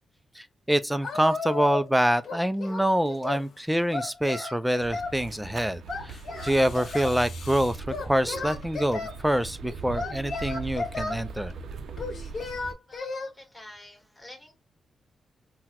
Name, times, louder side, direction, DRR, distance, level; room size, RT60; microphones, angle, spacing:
voice 1, 0.4-6.2 6.4-11.5, equal, 5° right, 0.3 m, -26 dB
sound 1, 1.0-1.9 2.9-4.0 6.1-8.1, left 5 dB, 70° left, 0.9 m, -50 dB
Singing, 1.0-1.9 2.2-3.5 3.9-5.2 5.9-7.2 7.9-9.1 9.9-11.2 12.0-13.3, left 3 dB, 50° left, 1.4 m, -34 dB
sound 2, 4.8-12.7, right 4 dB, 75° right, 0.5 m, -40 dB
voice 2, 12.9-14.5, left 1 dB, 15° left, 1.5 m, -48 dB
3.9 x 2.1 x 2.8 m
cardioid pair, 100°, 0 cm